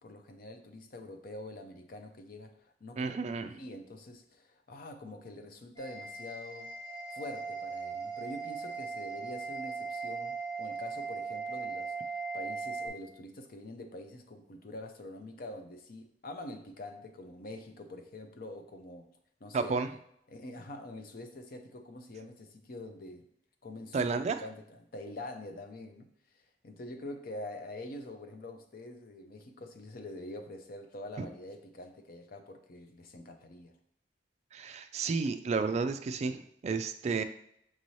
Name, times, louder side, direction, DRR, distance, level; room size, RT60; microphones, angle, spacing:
voice 1, 0.0-3.1 3.6-6.7 7.1-19.1 19.4-19.8 20.3-23.3 23.6-33.8, left 1 dB, 55° left, 6 dB, 0.5 m, -45 dB
voice 2, 3.0-3.5 19.5-19.9 23.9-24.4 34.5-37.2, right 4 dB, 40° right, 9 dB, 0.3 m, -31 dB
sound 1, 5.8-12.9, right 4 dB, 20° left, 1.1 m, -38 dB
6.0 x 2.7 x 3.1 m, 0.72 s
head